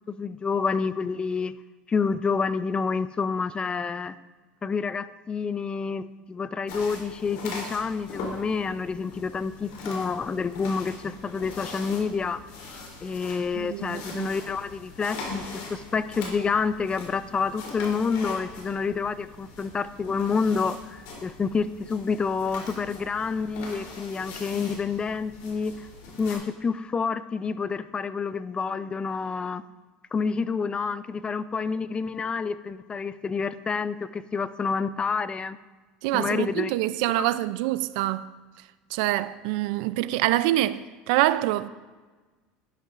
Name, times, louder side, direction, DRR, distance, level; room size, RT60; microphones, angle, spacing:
voice 1, 0.1-1.5 1.9-4.1 4.6-12.4 13.0-15.4 15.7-25.9 26.2-29.6 30.1-35.6 36.1-36.7 37.1-37.3, left 5 dB, 25° left, 0.4 m, -28 dB
sound 1, 6.7-26.4, left 3 dB, 75° left, 3.2 m, -41 dB
voice 2, 13.5-14.3 36.0-38.3 38.9-41.7, right 15 dB, 75° right, 0.4 m, -25 dB
11.5 x 11.5 x 2.5 m
supercardioid pair, 110°, 4 cm